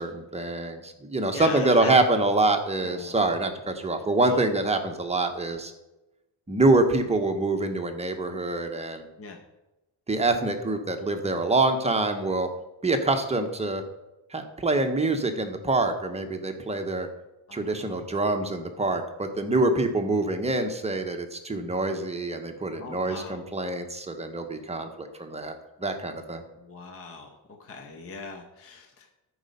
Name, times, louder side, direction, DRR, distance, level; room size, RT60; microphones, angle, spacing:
voice 1, 0.0-5.7 6.5-9.1 10.1-12.5 12.8-13.8 14.3-17.1 17.5-26.4, right 2 dB, 15° right, 5 dB, 0.9 m, -25 dB
voice 2, 1.3-1.9 2.8-3.1 4.2-4.4 9.2-9.4 17.5-18.0 22.8-23.4 26.6-27.3 27.6-29.1, left 4 dB, 30° left, 2 dB, 1.0 m, -40 dB
13.5 x 4.8 x 5.3 m, 0.99 s
cardioid pair, 145°, 49 cm